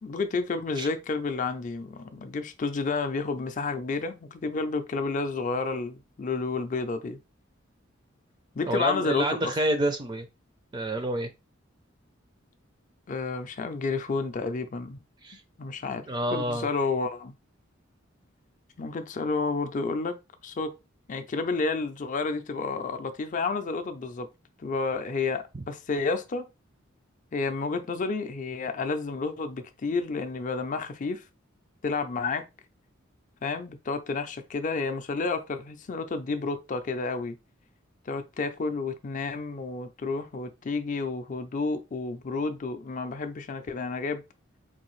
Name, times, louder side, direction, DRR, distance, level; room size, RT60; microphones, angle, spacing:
voice 1, 0.0-7.2 8.5-9.5 13.1-15.0 15.6-16.0 16.3-17.3 18.8-20.2 20.4-20.7 21.1-24.3 24.6-26.5 27.3-31.2 31.8-32.5 33.4-37.4 38.1-44.2, left 4 dB, 40° left, 0.4 m, -30 dB
voice 2, 8.7-10.3 10.7-11.3 15.2-15.4 16.1-16.7 25.5-25.6, right 1 dB, 25° right, 0.4 m, -28 dB
3.9 x 2.6 x 3.1 m
head